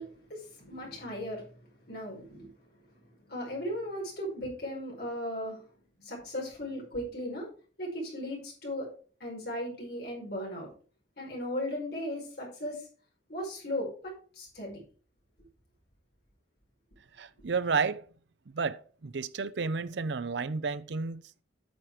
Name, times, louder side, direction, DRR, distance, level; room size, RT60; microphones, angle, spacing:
voice 1, 0.0-1.4 1.9-2.5 3.3-5.6 6.0-7.5 7.8-8.9 9.2-10.7 11.2-12.8 13.3-14.8, equal, 55° left, 4.9 m, -37 dB
voice 2, 17.2-18.0 18.5-21.2, right 5 dB, 65° right, 0.5 m, -31 dB
8.9 x 5.8 x 4.9 m
head